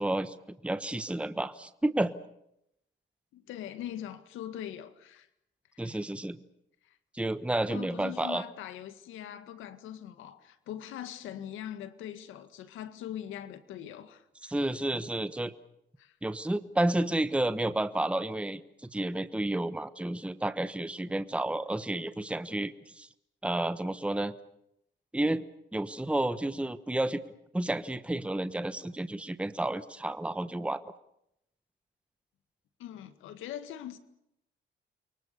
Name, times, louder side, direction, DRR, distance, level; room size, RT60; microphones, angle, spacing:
voice 1, 0.0-2.1 5.8-6.4 7.1-8.4 14.4-15.5 16.2-23.1 23.4-24.3 25.1-25.4 25.7-27.2 27.5-30.8, right 1 dB, 5° right, 1.1 m, -31 dB
voice 2, 3.3-5.3 5.7-6.0 6.8-7.0 7.7-14.5 16.0-16.2 32.8-34.0, left 11 dB, 90° left, 1.9 m, -42 dB
29.5 x 23.5 x 6.9 m
cardioid pair, 90°, 20 cm